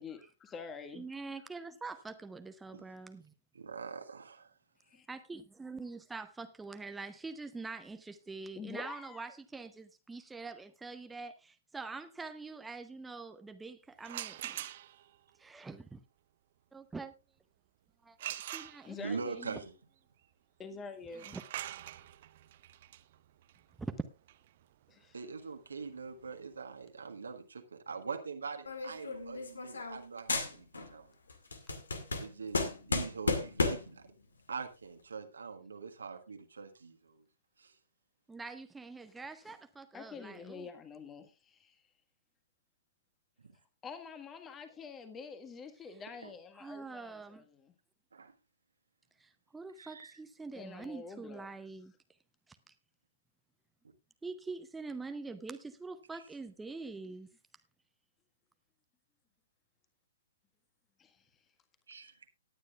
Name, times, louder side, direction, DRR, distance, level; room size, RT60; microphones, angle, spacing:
voice 1, 0.0-1.0 4.8-5.1 8.5-9.2 18.8-19.2 20.6-21.4 24.9-25.1 39.0-39.1 39.4-39.5 39.9-41.8 43.8-47.7 50.5-51.5 61.0-61.3, left 5 dB, 15° left, 1.6 m, -47 dB
voice 2, 0.9-3.3 5.1-14.7 15.4-16.0 16.7-17.1 18.0-19.0 19.2-19.6 21.3-21.4 23.8-24.0 38.3-40.7 46.5-47.4 49.2-51.9 54.2-57.3, right 3 dB, 5° right, 0.8 m, -44 dB
voice 3, 3.5-4.5 19.0-19.7 25.1-31.1 31.5-31.6 32.2-34.1 34.5-37.2 37.6-37.8 43.4-43.5 46.2-46.3 48.1-48.3 49.8-50.2 56.1-56.2 61.9-62.2, right 5 dB, 65° right, 1.6 m, -43 dB
sound 1, 14.0-15.2 18.2-19.2 21.1-26.8, right 13 dB, 45° right, 0.7 m, -45 dB
sound 2, 28.7-30.0 30.3-31.0 31.3-34.0, left 3 dB, 65° left, 2.1 m, -34 dB
18.5 x 9.8 x 2.4 m
figure-of-eight pair, 120°, 0 cm